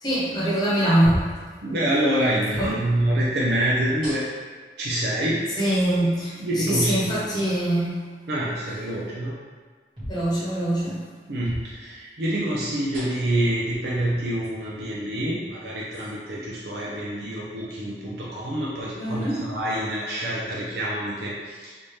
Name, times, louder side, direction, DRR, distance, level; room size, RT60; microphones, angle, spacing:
voice 1, 0.0-1.3 2.6-2.8 5.6-8.0 10.1-11.0 19.0-19.4, right 1 dB, 25° left, -9 dB, 1.0 m, -23 dB
sound 1, 1.0-1.4 2.5-2.8 4.0-4.5 5.5-5.6 7.0-7.2 9.9-10.2 11.4-11.7 12.9-13.3 14.4-14.5 15.9-16.1, equal, 30° right, 1.4 m, -34 dB
voice 2, 1.6-4.3 4.8-5.5 6.4-7.4 8.3-9.3 11.3-21.8, right 1 dB, 65° right, -6 dB, 0.5 m, -26 dB
3.5 x 2.7 x 3.2 m, 1.5 s
head